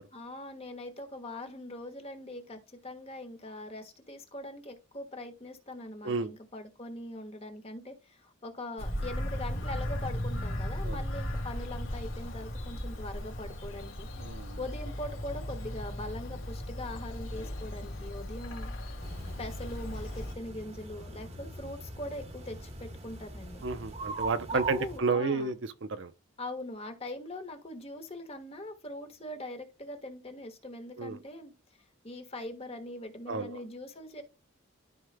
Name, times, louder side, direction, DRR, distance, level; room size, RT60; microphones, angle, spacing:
voice 1, 0.1-14.1 14.6-18.7 19.4-23.6 24.5-25.5 26.4-31.5 32.0-34.2, left 1 dB, 30° left, 1.4 m, -42 dB
Bird vocalization bird call bird song, 8.8-20.3, left 1 dB, 70° left, 2.6 m, -37 dB
voice 2, 14.2-14.6 23.6-25.5 25.9-26.1 31.0-31.2 33.3-33.6, right 4 dB, 60° right, 0.6 m, -31 dB
sound 1, 19.0-25.0, right 2 dB, 30° right, 1.3 m, -41 dB
13.0 x 4.8 x 2.2 m
head